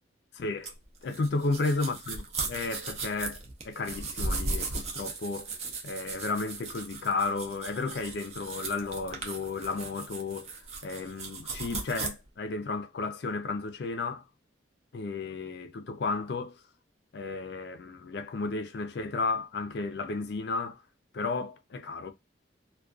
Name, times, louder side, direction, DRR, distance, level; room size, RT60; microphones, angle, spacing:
voice 1, 0.3-0.7 1.0-3.4 3.6-5.5 5.8-10.6 10.8-14.3 14.9-16.6 17.1-20.8 21.1-22.1, left 3 dB, 60° left, 0.4 m, -33 dB
sound 1, 0.6-12.1, right 3 dB, 35° right, 0.5 m, -37 dB
2.3 x 2.2 x 2.4 m
head